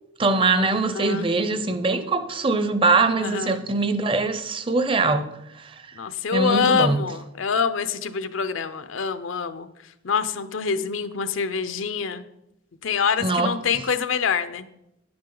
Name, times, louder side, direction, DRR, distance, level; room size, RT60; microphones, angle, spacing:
voice 1, 0.2-5.8 6.3-7.0 13.2-13.6, right 3 dB, 25° right, 0.6 m, -22 dB
voice 2, 3.2-3.6 6.0-9.7 10.0-12.3 12.8-14.7, left 6 dB, 85° left, 0.6 m, -25 dB
10.0 x 8.7 x 3.9 m
head